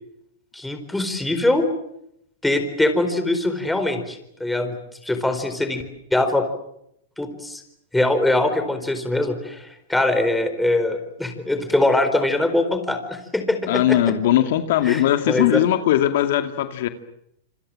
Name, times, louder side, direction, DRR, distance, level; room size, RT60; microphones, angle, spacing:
voice 1, 0.5-1.7 2.4-4.7 5.0-5.8 6.1-6.5 7.2-7.6 7.9-14.1 14.8-15.5, left 2 dB, 5° left, 4.4 m, -22 dB
voice 2, 13.7-16.9, left 12 dB, 65° left, 2.3 m, -19 dB
27.5 x 26.0 x 7.7 m
hypercardioid pair, 135°, 0 cm